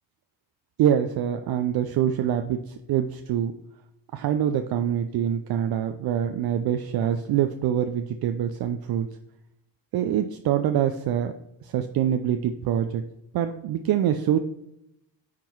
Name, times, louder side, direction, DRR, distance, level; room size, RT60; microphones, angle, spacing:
voice 1, 0.8-3.5 4.1-9.1 9.9-11.3 11.6-13.0 13.3-14.4, right 10 dB, 55° right, 7 dB, 0.6 m, -25 dB
9.4 x 3.7 x 4.6 m, 0.83 s
supercardioid pair, 70°, 45 cm